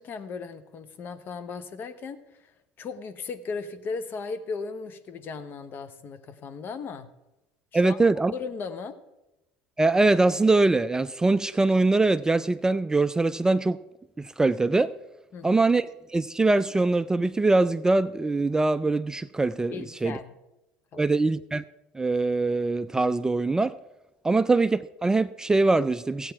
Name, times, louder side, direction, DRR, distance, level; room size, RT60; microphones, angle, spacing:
voice 1, 0.0-2.5 2.8-7.1 7.7-9.0 15.3-15.6 19.7-20.4 20.9-21.1, left 5 dB, 45° left, 1.0 m, -37 dB
voice 2, 7.7-8.3 9.8-13.8 14.2-14.9 15.4-15.9 16.1-20.2 21.0-21.6 21.9-23.7 24.2-26.3, right 3 dB, 15° right, 0.3 m, -23 dB
14.5 x 8.4 x 4.6 m
hypercardioid pair, 80°, 5 cm